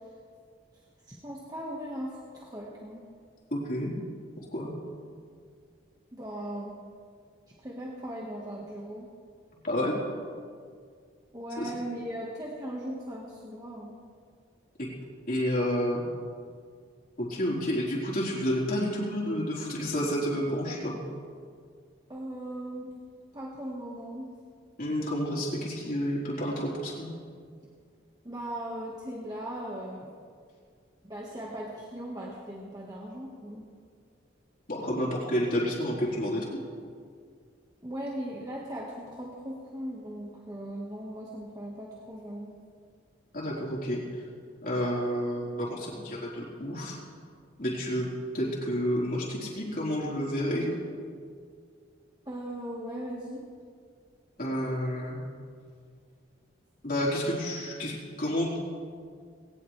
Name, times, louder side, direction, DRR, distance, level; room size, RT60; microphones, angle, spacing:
voice 1, 1.0-3.0 6.1-6.8 7.6-9.1 11.3-14.0 22.1-23.0 23.3-24.3 28.2-30.1 31.0-33.7 37.8-42.6 52.3-53.4, right 1 dB, 20° right, -4 dB, 1.5 m, -38 dB
voice 2, 3.5-3.9 4.5-4.7 9.6-10.0 11.6-11.7 14.8-14.9 15.3-16.0 17.2-20.9 24.8-27.1 34.7-36.5 43.3-44.0 44.6-47.0 47.6-48.1 48.3-50.7 54.4-55.2 56.8-58.5, equal, 50° left, -5 dB, 4.1 m, -30 dB
19.5 x 18.5 x 3.3 m, 2.1 s
head